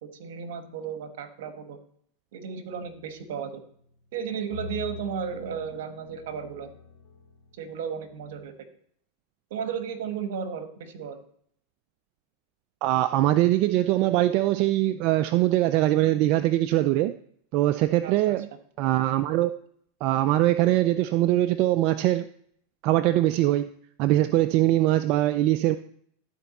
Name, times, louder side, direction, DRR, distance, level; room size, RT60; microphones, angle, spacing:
voice 1, 0.0-1.8 2.3-3.6 4.1-6.7 7.6-8.5 9.5-11.2 18.0-18.3, right 7 dB, 75° right, 8 dB, 1.1 m, -34 dB
sound 1, 2.7-3.6 4.5-8.5, left 5 dB, 75° left, 1.2 m, -44 dB
voice 2, 12.8-17.1 17.5-18.5 18.8-19.5 20.0-22.3 22.8-23.7 24.0-25.8, right 15 dB, 50° right, 9 dB, 0.3 m, -22 dB
12.5 x 4.4 x 4.1 m, 0.66 s
supercardioid pair, 130°, 0 cm